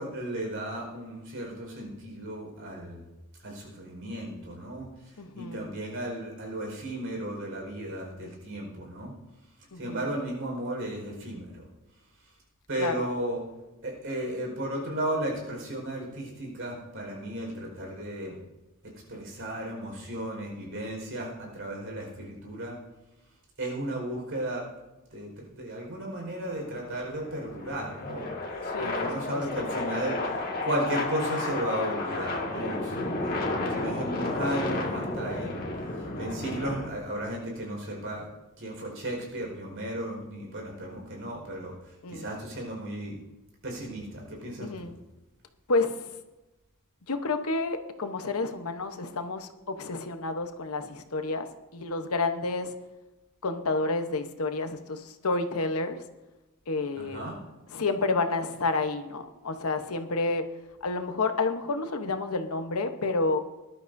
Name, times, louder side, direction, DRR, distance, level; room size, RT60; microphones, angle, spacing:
voice 1, 0.0-3.0 3.4-9.1 9.7-11.7 12.7-13.4 13.8-18.4 19.1-22.8 23.6-24.7 25.1-35.6 35.9-38.3 38.6-43.2 43.6-44.9 57.0-57.4, right 1 dB, 60° right, -1 dB, 4.7 m, -35 dB
voice 2, 5.2-5.7 9.7-10.0 12.8-12.9 28.7-29.6 32.9-33.4 42.0-42.3 44.6-45.0 45.7-46.1 47.1-52.7 53.4-56.0 56.7-57.2 57.7-60.4 60.8-63.5, left 3 dB, 85° left, 7 dB, 1.0 m, -30 dB
sound 1, 26.4-36.9, left 2 dB, 40° left, 1.9 m, -32 dB
20.0 x 11.5 x 2.7 m, 1.1 s
head